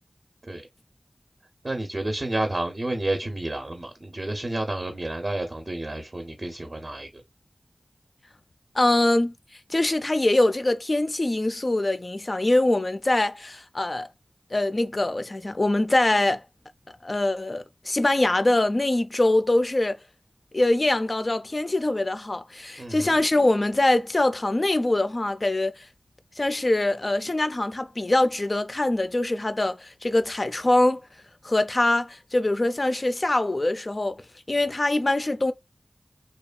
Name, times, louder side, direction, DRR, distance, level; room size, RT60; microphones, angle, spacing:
voice 1, 1.6-7.2 22.8-23.2, right 1 dB, 45° right, 0.5 m, -30 dB
voice 2, 8.8-9.3 9.7-14.1 14.5-16.4 17.0-20.0 20.5-25.9 26.4-31.0 31.4-34.2 34.5-35.5, left 2 dB, 45° left, 0.3 m, -23 dB
2.8 x 2.2 x 2.3 m
cardioid pair, 45°, 0 cm